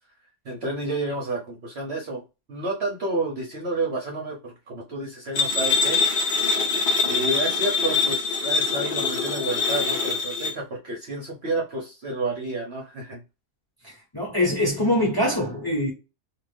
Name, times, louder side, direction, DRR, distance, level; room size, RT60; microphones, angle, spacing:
voice 1, 0.4-2.2 2.5-6.0 7.1-13.2, right 2 dB, 55° right, 0.8 m, -30 dB
sound 1, 5.4-10.5, left 4 dB, 45° left, 0.8 m, -24 dB
voice 2, 13.8-15.9, left 1 dB, 20° left, 0.9 m, -24 dB
2.5 x 2.4 x 3.3 m
omnidirectional pair, 1.6 m